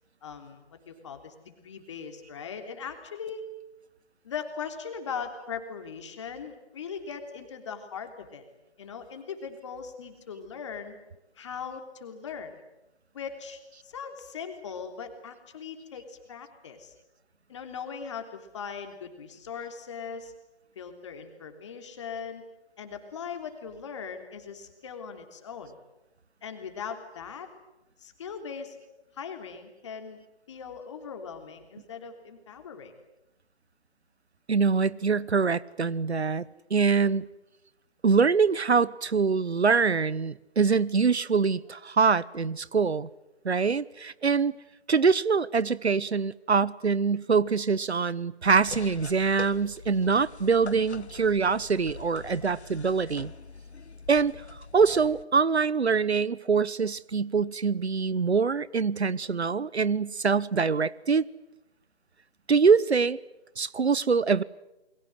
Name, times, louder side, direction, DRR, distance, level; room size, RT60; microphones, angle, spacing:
voice 1, 0.2-3.4 4.2-8.4 8.8-11.0 11.4-12.5 13.1-16.9 17.5-20.3 20.7-22.4 22.8-25.7 26.4-27.5 28.0-28.8 29.1-30.2 30.5-32.9, left 6 dB, 25° left, 3.2 m, -39 dB
voice 2, 34.5-37.2 38.0-43.1 43.4-44.6 44.9-53.3 54.1-54.4 54.7-61.3 62.5-63.2 63.6-64.4, right 5 dB, 75° right, 1.1 m, -24 dB
sound 1, 48.4-55.2, left 4 dB, 80° left, 1.4 m, -44 dB
29.0 x 23.0 x 7.9 m
figure-of-eight pair, 160°, 33 cm